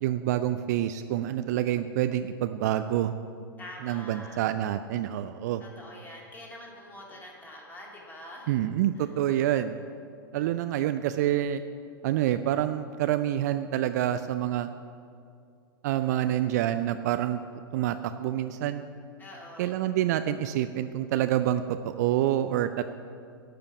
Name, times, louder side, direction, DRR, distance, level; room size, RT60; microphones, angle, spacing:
voice 1, 0.0-3.1 3.8-5.6 8.5-9.8 10.3-11.6 12.0-14.7 15.8-17.4 17.7-18.8 19.6-21.6 22.0-22.8, right 12 dB, 45° right, 10 dB, 0.4 m, -27 dB
voice 2, 3.6-4.4 5.6-8.6 19.2-19.7, left 1 dB, 15° left, -2 dB, 2.3 m, -45 dB
12.0 x 5.1 x 7.0 m, 2.4 s
figure-of-eight pair, 95°, 12 cm